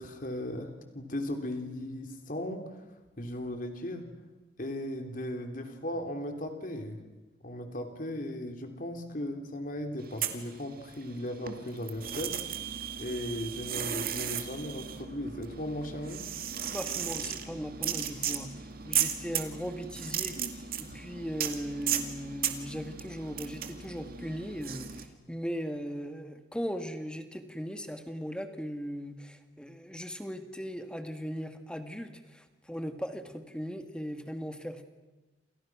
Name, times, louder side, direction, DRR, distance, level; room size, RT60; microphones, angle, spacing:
voice 1, 0.0-2.9 3.2-4.0 4.6-7.0 7.4-12.4 13.0-16.2, left 1 dB, 50° left, 5 dB, 3.4 m, -37 dB
sound 1, 10.0-11.1 11.4-25.1, right 9 dB, 55° right, 2.2 m, -35 dB
voice 2, 16.6-18.5 18.8-34.8, equal, 5° left, 7 dB, 1.9 m, -38 dB
28.5 x 28.0 x 6.2 m, 1.1 s
head